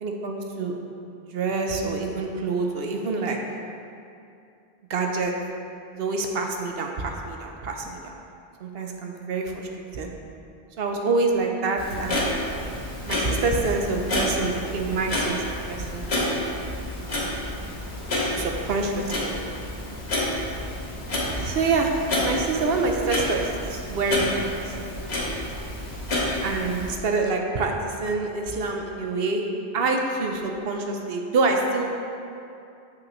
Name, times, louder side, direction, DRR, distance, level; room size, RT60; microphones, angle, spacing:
voice 1, 0.0-0.8 1.3-3.4 4.9-5.3 5.9-8.0 8.6-9.7 9.9-10.1 10.8-12.3 13.1-16.1 18.4-19.4 21.3-23.4 23.7-24.6 26.4-29.4 29.7-31.9, right 3 dB, 70° right, 2 dB, 0.9 m, -26 dB
Clock, 11.8-26.9, left 1 dB, 80° left, 1.6 m, -29 dB
7.7 x 5.7 x 3.1 m, 2.5 s
omnidirectional pair, 1.0 m